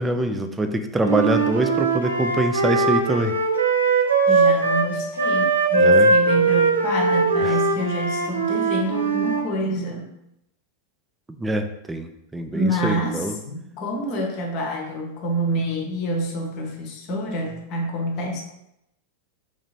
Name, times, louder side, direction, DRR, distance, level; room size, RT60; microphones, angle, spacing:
voice 1, 0.0-3.4 5.8-6.1 7.4-7.5 11.4-13.4, right 2 dB, 10° right, 6 dB, 0.3 m, -24 dB
Wind instrument woodwind instrument, 1.0-4.9 5.2-9.5, right 3 dB, 75° right, 0.5 m, -20 dB
voice 2, 4.3-10.1 12.5-18.4, right 1 dB, 40° left, 1 dB, 0.9 m, -27 dB
3.3 x 2.9 x 4.1 m, 0.84 s
figure-of-eight pair, 90°, 0 cm